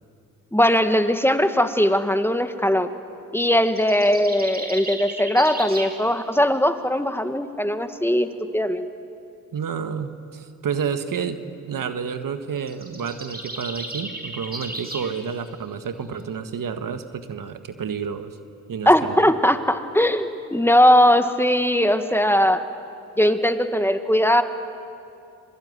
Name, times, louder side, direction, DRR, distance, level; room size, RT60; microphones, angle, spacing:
voice 1, 0.5-2.9 3.3-8.3 8.5-8.9 18.9-22.6 23.2-24.4, equal, 5° left, 8 dB, 1.9 m, -19 dB
sound 1, 3.6-6.0 12.6-15.1, right 2 dB, 25° right, 5.5 m, -34 dB
voice 2, 9.5-18.4 18.7-19.3, right 6 dB, 65° right, 9 dB, 1.7 m, -30 dB
26.0 x 23.0 x 9.6 m, 2.6 s
supercardioid pair, 50°, 35 cm